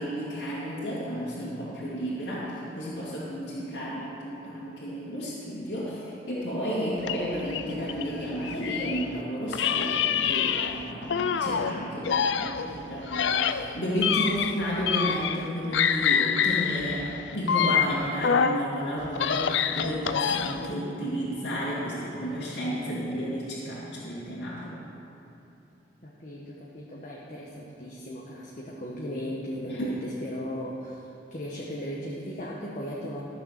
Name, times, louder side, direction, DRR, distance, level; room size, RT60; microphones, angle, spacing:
voice 1, 0.0-24.7 29.7-29.9, equal, 65° left, -10 dB, 2.4 m, -32 dB
sound 1, 7.0-9.1 9.5-11.7 12.0-15.5 15.7-18.6 19.0-20.7, left 7 dB, 80° left, 0.4 m, -26 dB
voice 2, 20.7-21.0 26.0-31.0 31.3-33.2, equal, 45° left, -4 dB, 1.2 m, -37 dB
14.0 x 6.7 x 6.7 m, 2.9 s
head